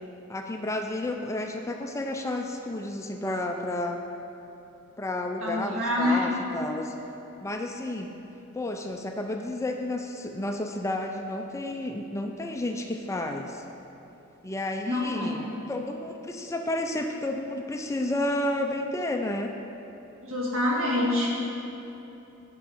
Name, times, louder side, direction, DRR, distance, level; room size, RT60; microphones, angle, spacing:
voice 1, 0.3-4.0 5.0-6.9 7.4-8.1 8.5-13.6 14.4-19.6, left 1 dB, 15° left, 3 dB, 0.3 m, -31 dB
voice 2, 5.4-6.2 14.9-15.4 20.3-21.3, left 1 dB, 65° right, -4 dB, 1.6 m, -26 dB
8.5 x 5.4 x 4.9 m, 3.0 s
head